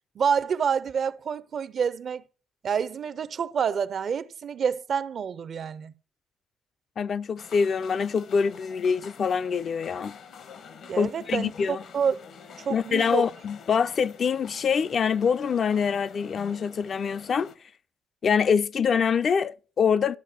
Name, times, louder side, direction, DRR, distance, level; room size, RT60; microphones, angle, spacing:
voice 1, 0.2-2.2 2.6-5.9 10.9-12.2 12.6-13.3, right 7 dB, 55° right, 0.5 m, -28 dB
voice 2, 7.0-10.2 11.0-11.8 12.7-17.5 18.2-20.2, left 6 dB, 50° left, 0.4 m, -25 dB
sound 1, 7.4-17.6, left 6 dB, 70° left, 1.1 m, -47 dB
12.5 x 5.7 x 5.0 m
cardioid pair, 90°, 0 cm